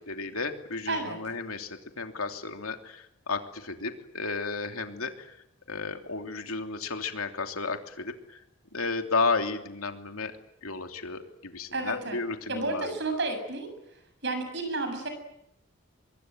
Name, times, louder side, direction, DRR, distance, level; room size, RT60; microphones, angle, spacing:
voice 1, 0.0-5.4 5.7-8.4 8.7-13.0, left 4 dB, 90° left, 5 dB, 3.1 m, -33 dB
voice 2, 0.9-1.2 11.7-12.2 12.5-13.7 14.2-15.1, right 2 dB, 55° right, 7 dB, 7.3 m, -31 dB
25.0 x 22.0 x 9.1 m, 0.81 s
head